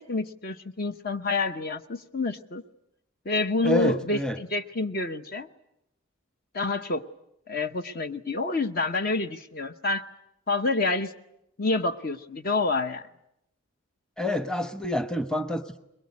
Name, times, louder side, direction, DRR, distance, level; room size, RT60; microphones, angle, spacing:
voice 1, 0.0-2.6 3.2-5.5 6.5-7.0 7.5-10.0 10.5-11.1 11.6-13.1, left 3 dB, 45° left, 9 dB, 0.9 m, -28 dB
voice 2, 3.6-4.4 14.2-15.8, left 1 dB, 5° left, 10 dB, 0.9 m, -28 dB
22.5 x 22.0 x 9.5 m, 0.82 s
head